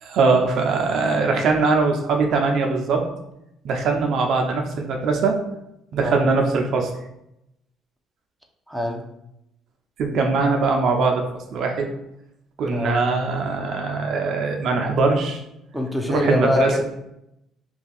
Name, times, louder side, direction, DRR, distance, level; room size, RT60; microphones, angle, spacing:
voice 1, 0.0-3.0 3.6-5.4 5.9-6.9 10.0-11.2 11.5-11.9 12.6-15.4 16.1-16.8, right 4 dB, 65° right, 2 dB, 0.5 m, -21 dB
voice 2, 8.7-9.1 12.7-13.0 15.7-16.8, left 1 dB, ahead, 1 dB, 0.5 m, -24 dB
2.6 x 2.3 x 3.9 m, 0.84 s
supercardioid pair, 75°, 0 cm